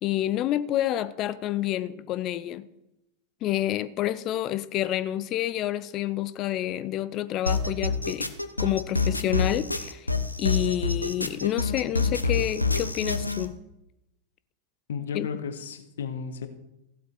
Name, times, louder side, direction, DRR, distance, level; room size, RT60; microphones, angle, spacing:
voice 1, 0.0-2.7 3.4-8.3 8.6-10.1 10.4-13.6 15.1-15.3, left 13 dB, 35° left, 0.6 m, -28 dB
sound 1, 7.5-13.5, left 3 dB, 85° left, 1.0 m, -27 dB
voice 2, 14.9-16.5, left 6 dB, 60° left, 1.5 m, -33 dB
15.0 x 7.9 x 6.4 m
figure-of-eight pair, 90°, 0 cm